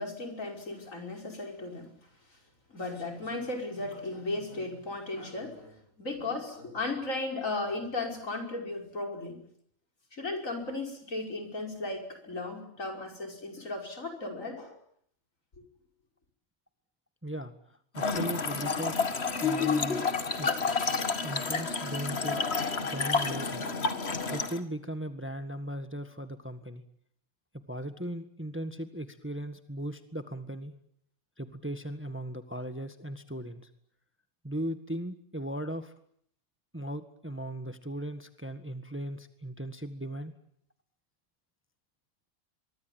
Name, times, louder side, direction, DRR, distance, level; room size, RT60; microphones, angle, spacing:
voice 1, 0.0-1.9 2.7-9.4 10.1-14.8, left 2 dB, 65° left, 4 dB, 5.7 m, -36 dB
voice 2, 17.2-19.0 19.4-20.1 20.4-20.6 21.2-22.4 22.8-23.7 24.3-26.8 27.7-30.7 31.4-33.7 34.4-35.9 36.7-40.3, right 1 dB, 10° right, 9 dB, 1.6 m, -38 dB
Trickle dribble / Fill (with liquid), 17.9-24.6, left 4 dB, 45° left, 2.1 m, -30 dB
24.0 x 23.5 x 9.3 m, 0.66 s
omnidirectional pair, 1.5 m